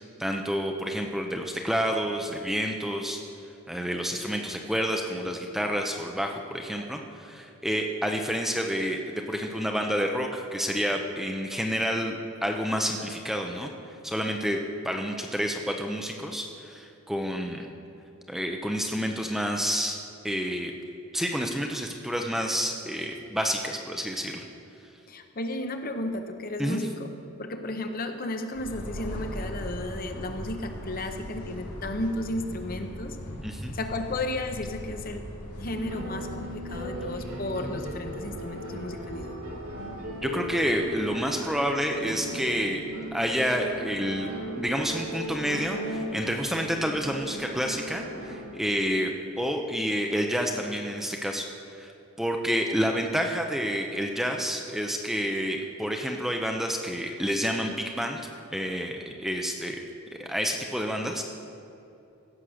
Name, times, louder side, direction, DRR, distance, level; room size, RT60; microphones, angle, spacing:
voice 1, 0.2-3.2 3.7-13.7 14.0-14.6 14.8-17.7 18.3-20.0 20.2-20.7 21.1-24.5 26.6-26.9 33.4-33.7 40.2-42.8 43.1-51.9 52.2-58.2 58.5-59.8 60.2-61.2, equal, ahead, 2 dB, 0.6 m, -29 dB
voice 2, 25.1-27.1 27.4-33.2 33.7-35.2 35.6-39.3, left 1 dB, 40° left, 6 dB, 0.8 m, -33 dB
sound 1, 28.5-41.0, equal, 85° left, 2.2 m, -40 dB
sound 2, 35.6-48.4, right 1 dB, 80° right, 2.2 m, -37 dB
16.0 x 6.5 x 6.4 m, 2.8 s
head